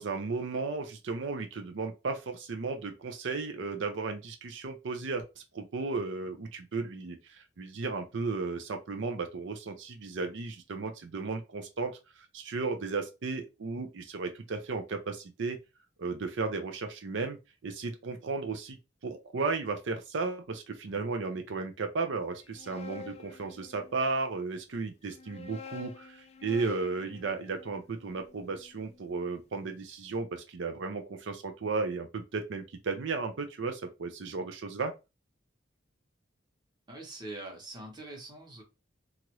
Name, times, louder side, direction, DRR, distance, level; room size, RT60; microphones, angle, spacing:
voice 1, 0.0-15.6 16.0-17.4 17.6-18.8 19.0-34.9, right 4 dB, 75° right, 0.5 m, -34 dB
sound 1, 22.3-24.2 25.0-29.2, left 5 dB, 35° left, 0.4 m, -49 dB
voice 2, 36.9-38.6, right 2 dB, 25° right, 0.9 m, -43 dB
2.9 x 2.4 x 2.9 m
head